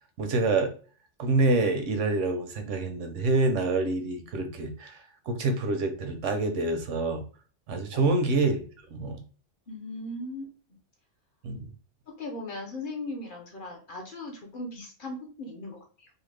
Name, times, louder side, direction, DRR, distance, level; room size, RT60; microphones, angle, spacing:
voice 1, 0.2-0.7 1.2-7.2 7.7-9.2 11.4-11.7, right 3 dB, 80° right, 6 dB, 0.9 m, -27 dB
voice 2, 9.7-10.5 12.1-16.1, left 2 dB, 50° left, 1 dB, 0.7 m, -38 dB
2.7 x 2.1 x 3.1 m, 0.40 s
omnidirectional pair, 1.2 m